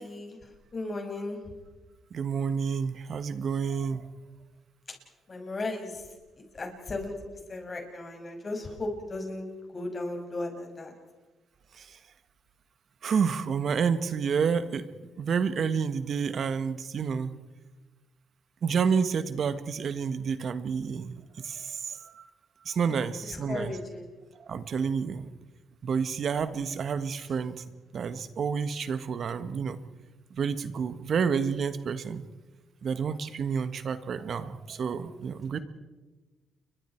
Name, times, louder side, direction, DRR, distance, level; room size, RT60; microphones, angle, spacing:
voice 1, 0.0-1.4 5.3-6.0 6.4-7.1 7.5-10.9 23.2-24.1, left 2 dB, 35° left, 2 dB, 6.2 m, -36 dB
voice 2, 2.1-4.1 11.8-11.9 13.0-14.9 15.2-17.3 18.6-22.2 22.6-23.7 24.5-25.3 25.8-27.6 27.9-29.8 30.4-32.2 32.8-35.6, right 6 dB, 55° right, 11 dB, 1.6 m, -29 dB
29.5 x 23.5 x 4.6 m, 1.2 s
cardioid pair, 90°, 0 cm